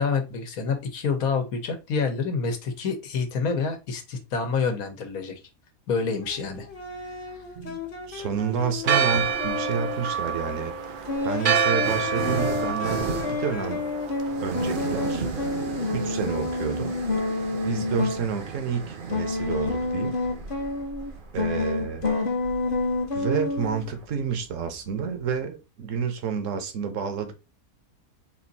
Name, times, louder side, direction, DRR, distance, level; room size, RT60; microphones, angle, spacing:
voice 1, 0.0-5.4 5.9-6.7, left 5 dB, 80° left, 1.4 m, -27 dB
sound 1, 6.2-10.1 11.1-18.3 19.1-21.1 21.4-23.9, left 3 dB, 40° left, 1.0 m, -29 dB
voice 2, 8.1-13.9 14.4-15.2 15.9-16.9 17.6-20.2 21.3-22.2 23.1-27.3, right 6 dB, 65° right, 1.2 m, -30 dB
Church bell, 8.8-15.1, right 6 dB, 90° right, 0.4 m, -28 dB
sound 2, 9.1-9.6 10.6-24.0, right 5 dB, 45° right, 0.7 m, -37 dB
4.3 x 2.6 x 4.0 m
omnidirectional pair, 1.5 m